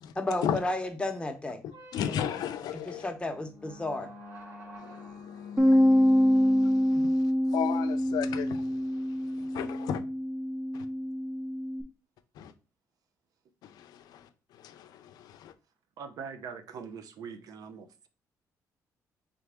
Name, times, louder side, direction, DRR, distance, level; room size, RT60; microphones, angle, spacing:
voice 1, 0.1-1.6 2.9-4.1 6.9-7.1, left 2 dB, 15° left, 0.8 m, -32 dB
sound 1, 1.7-9.5, left 4 dB, 45° right, 2.0 m, -45 dB
voice 2, 1.9-3.1 4.8-7.2 7.5-8.7 9.2-10.0 10.7-10.9 12.4-12.5 14.0-14.3 14.6-15.5, left 9 dB, 80° left, 0.4 m, -35 dB
Bass guitar, 5.6-11.8, equal, 15° right, 0.6 m, -25 dB
voice 3, 16.0-18.1, right 6 dB, 65° right, 0.5 m, -42 dB
3.5 x 3.4 x 3.5 m
cardioid pair, 100°, 7 cm